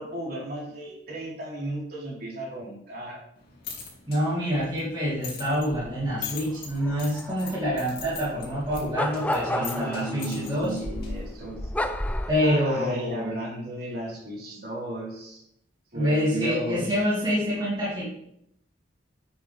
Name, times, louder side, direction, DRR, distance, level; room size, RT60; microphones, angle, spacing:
voice 1, 0.0-3.2 9.4-11.6 12.4-15.4 15.9-16.9, right 1 dB, 50° right, -5 dB, 3.9 m, -34 dB
sound 1, 3.4-11.4, left 6 dB, 50° left, 2.8 m, -42 dB
voice 2, 4.1-10.8 12.3-13.3 15.9-18.0, equal, 20° right, -9 dB, 2.5 m, -26 dB
sound 2, 5.7-12.3, left 1 dB, 5° left, 0.5 m, -33 dB
10.0 x 8.0 x 3.4 m, 0.74 s
head